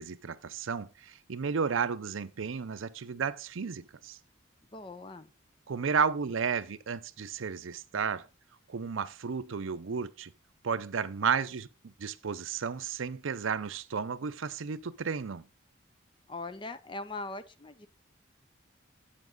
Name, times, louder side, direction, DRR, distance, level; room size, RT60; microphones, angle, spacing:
voice 1, 0.0-4.2 5.7-8.3 8.7-10.3 10.6-15.5, right 6 dB, 80° right, 0.6 m, -33 dB
voice 2, 4.7-5.3 16.3-17.9, left 2 dB, 25° left, 0.5 m, -40 dB
8.8 x 7.2 x 3.8 m
head